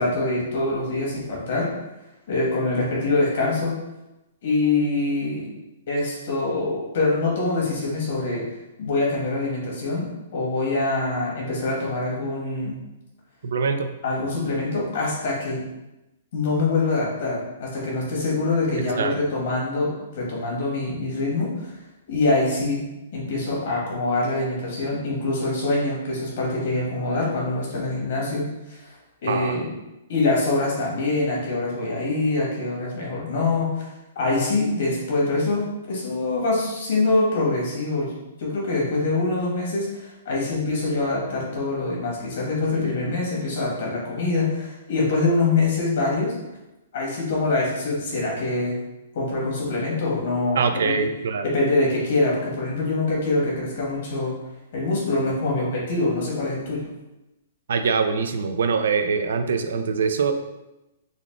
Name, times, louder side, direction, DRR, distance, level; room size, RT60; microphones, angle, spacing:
voice 1, 0.0-1.7 2.3-3.7 4.4-5.5 5.9-8.4 8.8-12.8 14.0-15.6 16.3-21.5 22.1-22.8 23.1-28.9 29.2-29.7 30.1-33.9 34.1-46.3 46.9-48.8 49.1-51.0 51.4-54.3 54.7-56.9, left 2 dB, 50° left, -4 dB, 1.5 m, -24 dB
voice 2, 13.4-13.9 19.0-19.1 29.3-29.6 50.6-51.5 57.7-60.3, right 5 dB, 70° right, 7 dB, 0.4 m, -23 dB
4.0 x 2.4 x 3.5 m, 0.97 s
hypercardioid pair, 170°, 0 cm